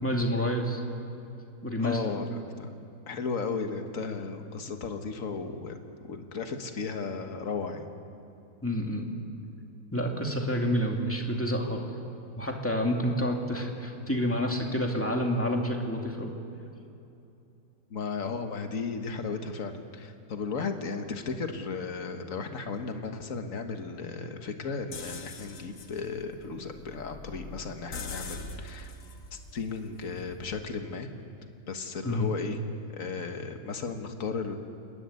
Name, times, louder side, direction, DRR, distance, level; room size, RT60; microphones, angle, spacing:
voice 1, 0.0-0.8 1.6-2.0 8.6-9.1 9.9-11.9 12.4-16.3 32.0-32.3, equal, 10° left, 1 dB, 2.4 m, -28 dB
voice 2, 1.8-2.7 3.1-5.8 6.1-7.9 17.9-28.9 29.3-31.1 31.7-32.6 32.9-34.6, left 4 dB, 55° left, 6 dB, 1.9 m, -35 dB
sound 1, 24.9-30.7, left 3 dB, 70° left, 2.0 m, -43 dB
29.0 x 12.5 x 9.7 m, 2.7 s
omnidirectional pair, 1.6 m